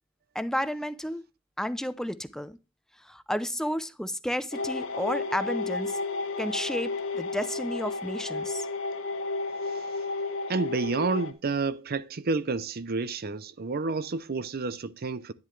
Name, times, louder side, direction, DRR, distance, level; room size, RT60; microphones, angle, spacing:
voice 1, 0.3-1.2 1.6-2.6 3.0-6.0 6.4-8.7, equal, 5° left, 0.6 m, -32 dB
sound 1, 4.5-11.3, left 3 dB, 70° left, 1.6 m, -32 dB
voice 2, 10.5-15.3, right 4 dB, 45° right, 0.6 m, -30 dB
10.5 x 10.0 x 3.2 m
head